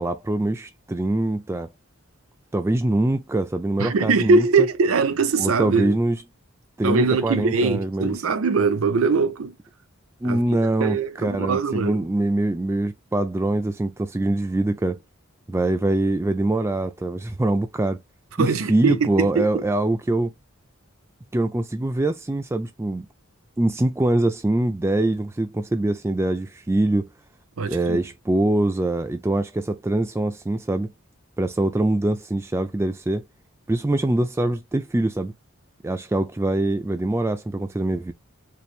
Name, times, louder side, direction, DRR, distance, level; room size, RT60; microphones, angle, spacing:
voice 1, 0.0-1.7 2.5-4.7 5.4-6.2 6.8-8.1 10.2-15.0 15.5-18.0 18.4-20.3 21.3-23.1 23.6-27.1 27.7-30.9 31.4-33.2 33.7-35.3 35.8-38.1, right 1 dB, 10° right, 0.3 m, -23 dB
voice 2, 3.8-6.0 6.8-9.6 10.2-10.4 10.8-12.1 18.4-19.6 27.6-28.0, right 4 dB, 75° right, 0.5 m, -22 dB
4.3 x 2.5 x 3.1 m
head